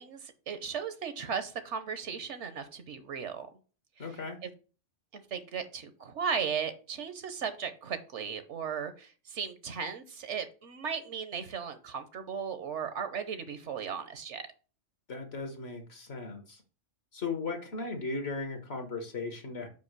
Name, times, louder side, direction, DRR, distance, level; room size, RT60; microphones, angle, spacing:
voice 1, 0.0-3.5 4.0-4.1 4.4-4.5 5.1-14.4, right 6 dB, 70° right, 10 dB, 1.2 m, -36 dB
voice 2, 4.0-4.4 15.1-16.6 17.1-19.7, left 3 dB, 60° left, 6 dB, 1.5 m, -37 dB
5.3 x 5.2 x 6.6 m, 0.36 s
omnidirectional pair, 1.3 m